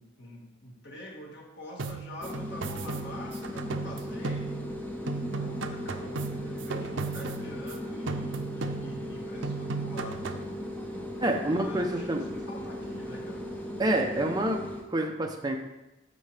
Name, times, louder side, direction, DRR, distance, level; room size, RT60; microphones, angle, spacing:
voice 1, 0.0-4.7 5.1-10.6 11.4-13.5, left 1 dB, 60° left, -1 dB, 1.8 m, -46 dB
sound 1, 1.8-4.8 5.1-7.8 8.1-9.1 9.4-10.5, right 4 dB, 70° right, 0.6 m, -36 dB
sound 2, 2.2-14.9, left 1 dB, 10° left, 0.9 m, -38 dB
sound 3, 3.7-14.2, right 1 dB, 40° right, 3.3 m, -48 dB
voice 2, 11.2-12.2 13.8-14.6 14.9-15.6, right 1 dB, 20° right, 2 dB, 0.7 m, -27 dB
13.5 x 4.8 x 3.4 m, 0.96 s
head